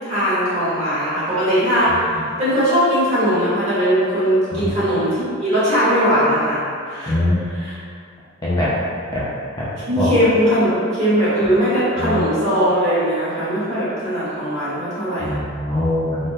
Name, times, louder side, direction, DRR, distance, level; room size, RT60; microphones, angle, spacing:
voice 1, 0.0-5.1 5.4-7.1 7.6-7.7 9.8-15.3, equal, 35° right, -12 dB, 1.3 m, -19 dB
voice 2, 1.9-2.2 4.5-4.7 7.1-7.4 8.4-8.7 9.1-9.2 9.6-9.7 10.0-10.1 12.0-12.2 15.2-16.3, left 1 dB, 20° left, -9 dB, 0.4 m, -22 dB
3.6 x 2.1 x 2.6 m, 2.2 s
head